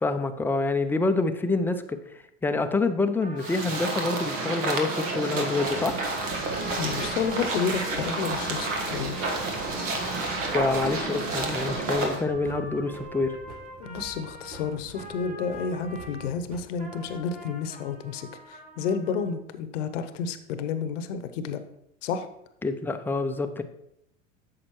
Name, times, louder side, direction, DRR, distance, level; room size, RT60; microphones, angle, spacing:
voice 1, 0.0-2.0 2.4-6.0 10.5-13.4 22.6-23.6, left 3 dB, 5° left, 8 dB, 0.4 m, -27 dB
Trumpet, 3.2-16.3 16.8-19.3, right 1 dB, 20° right, 1.7 m, -44 dB
sound 1, 3.4-12.2, right 3 dB, 80° right, 1.5 m, -30 dB
sound 2, 5.6-17.5, right 3 dB, 65° right, 1.6 m, -46 dB
voice 2, 6.8-9.3 13.8-21.6 22.0-22.3, left 6 dB, 75° left, 10 dB, 0.8 m, -31 dB
8.7 x 6.5 x 3.0 m, 0.79 s
hypercardioid pair, 90°, 38 cm